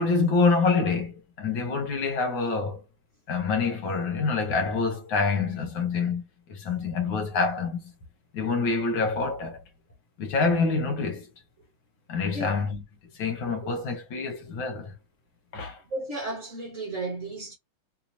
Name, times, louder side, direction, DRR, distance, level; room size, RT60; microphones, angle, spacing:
voice 1, 0.0-2.8 3.3-6.2 6.5-7.9 8.3-9.6 10.2-11.3 12.1-12.8 13.2-14.9 15.5-15.8, left 4 dB, 65° left, 1.7 m, -26 dB
voice 2, 15.9-17.5, right 2 dB, 45° right, 1.3 m, -33 dB
3.7 x 2.9 x 2.6 m
omnidirectional pair, 2.4 m